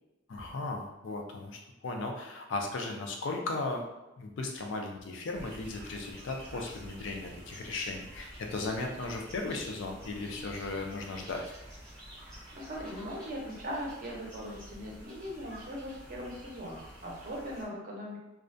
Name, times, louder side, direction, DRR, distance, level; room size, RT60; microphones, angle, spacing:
voice 1, 0.3-3.8 4.2-11.4, left 3 dB, 75° left, 2 dB, 0.4 m, -36 dB
sound 1, 5.3-17.6, equal, 5° left, 0.6 m, -49 dB
voice 2, 12.2-18.2, equal, 40° right, -3 dB, 0.5 m, -40 dB
2.3 x 2.1 x 2.5 m, 0.98 s
head